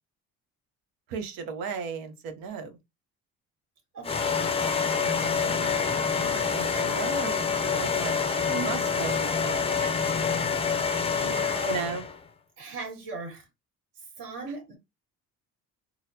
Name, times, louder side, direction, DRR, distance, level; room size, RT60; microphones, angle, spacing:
voice 1, 1.1-2.8 4.3-9.9 11.7-12.0, right 6 dB, 85° right, 0.8 m, -37 dB
voice 2, 3.9-4.3 11.2-11.8 12.6-13.5 14.2-14.7, right 3 dB, 60° right, 1.7 m, -38 dB
sound 1, 4.0-12.2, left 5 dB, 15° left, 0.4 m, -27 dB
3.9 x 2.0 x 2.7 m
cardioid pair, 95°, 34 cm